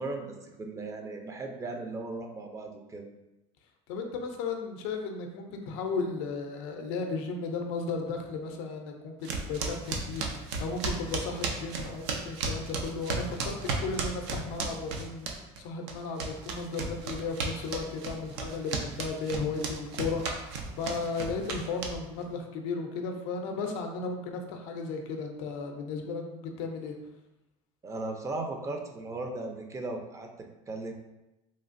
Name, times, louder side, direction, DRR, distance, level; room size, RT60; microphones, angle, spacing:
voice 1, 0.0-3.1 27.8-30.9, right 2 dB, 20° right, 3 dB, 0.4 m, -37 dB
voice 2, 3.9-15.3 15.6-26.9, left 4 dB, 80° left, 3 dB, 0.4 m, -35 dB
sound 1, 9.2-15.6 15.9-22.2, right 4 dB, 90° right, 0.4 m, -34 dB
3.0 x 2.4 x 2.5 m, 0.96 s
supercardioid pair, 110°, 14 cm